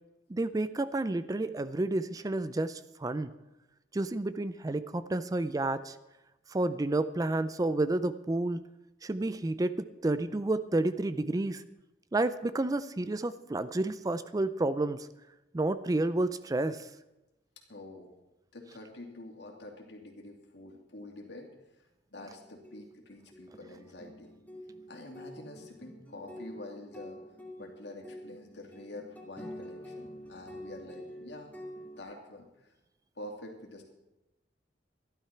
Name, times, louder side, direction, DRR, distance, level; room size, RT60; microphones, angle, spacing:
voice 1, 0.3-3.3 3.9-6.0 6.5-8.6 9.0-11.6 12.1-15.1 15.5-16.9, right 2 dB, 20° right, 14 dB, 0.4 m, -30 dB
voice 2, 17.7-18.1 18.5-21.5 22.1-24.3 24.9-27.2 27.6-31.5 32.0-32.7 33.2-33.8, left 1 dB, 70° left, 2 dB, 2.6 m, -47 dB
sound 1, 22.2-32.0, equal, 10° left, 1.9 m, -47 dB
13.0 x 11.5 x 5.8 m, 0.97 s
head